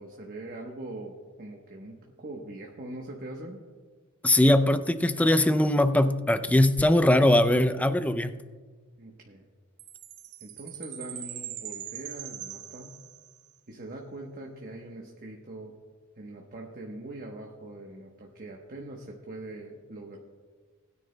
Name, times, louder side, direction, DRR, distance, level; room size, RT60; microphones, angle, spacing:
voice 1, 0.0-3.6 9.0-9.4 10.4-13.0 13.7-15.8 16.2-20.2, right 2 dB, 40° right, 0 dB, 1.0 m, -42 dB
voice 2, 4.2-8.3, left 1 dB, 5° left, 11 dB, 0.4 m, -21 dB
Chime, 9.8-13.5, right 12 dB, 90° right, 0.7 m, -41 dB
20.0 x 9.8 x 2.2 m, 1.5 s
head